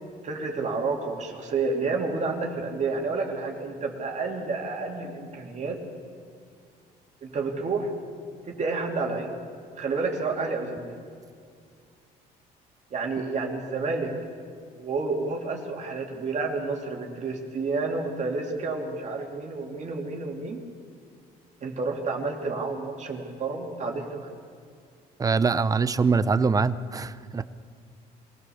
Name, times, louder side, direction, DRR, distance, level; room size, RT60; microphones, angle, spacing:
voice 1, 0.2-5.8 7.2-7.9 8.6-9.3 9.8-10.9 12.9-14.1 14.7-20.6 21.6-24.3, right 3 dB, 45° right, 1 dB, 2.7 m, -30 dB
voice 2, 25.2-27.4, right 4 dB, 20° right, 14 dB, 0.7 m, -23 dB
23.5 x 16.5 x 7.1 m, 2.2 s
cardioid pair, 110°, 17 cm